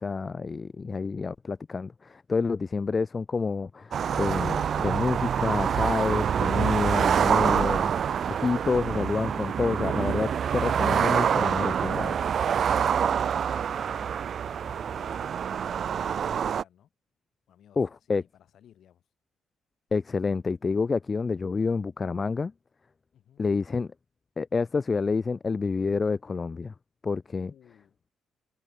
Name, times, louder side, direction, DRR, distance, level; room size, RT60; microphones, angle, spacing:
voice 1, 0.0-12.2 17.8-18.2 19.9-22.5 23.4-23.9 24.4-26.7 27.0-27.5, left 4 dB, 30° left, 0.4 m, -28 dB
sound 1, 3.9-16.6, right 8 dB, 55° right, 0.4 m, -26 dB
voice 2, 13.1-14.2 14.4-16.9 17.5-19.0 23.1-23.5 27.3-28.0, left 10 dB, 70° left, 6.7 m, -57 dB
cardioid pair, 90°, 0 cm